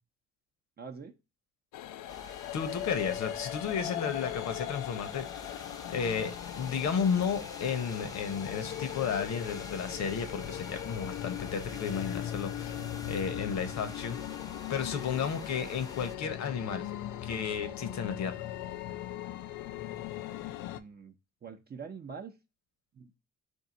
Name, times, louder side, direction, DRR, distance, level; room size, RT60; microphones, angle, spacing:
voice 1, 0.8-1.1 20.7-21.1 21.4-22.3 23.0-23.2, right 5 dB, 30° right, 0.6 m, -44 dB
sound 1, 1.7-20.8, left 12 dB, 85° left, 0.5 m, -39 dB
sound 2, 2.1-16.2, left 2 dB, 10° left, 0.6 m, -47 dB
voice 2, 2.5-14.2 14.7-16.9 17.2-18.3, left 6 dB, 65° left, 0.9 m, -33 dB
4.6 x 2.6 x 3.8 m
cardioid pair, 90°, 30 cm